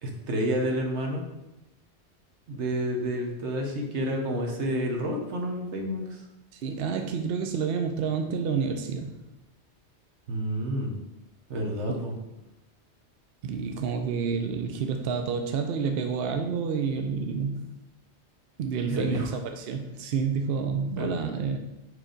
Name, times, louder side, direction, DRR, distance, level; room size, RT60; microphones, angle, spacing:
voice 1, 0.0-1.2 2.5-6.2 10.3-10.9 11.5-12.1 14.0-14.1 18.8-19.3 21.0-21.1, equal, 80° right, 1 dB, 1.4 m, -29 dB
voice 2, 6.5-9.1 13.4-17.7 18.6-19.2 19.5-21.6, right 6 dB, 65° right, 5 dB, 0.8 m, -29 dB
4.8 x 4.4 x 5.1 m, 0.95 s
omnidirectional pair, 1.2 m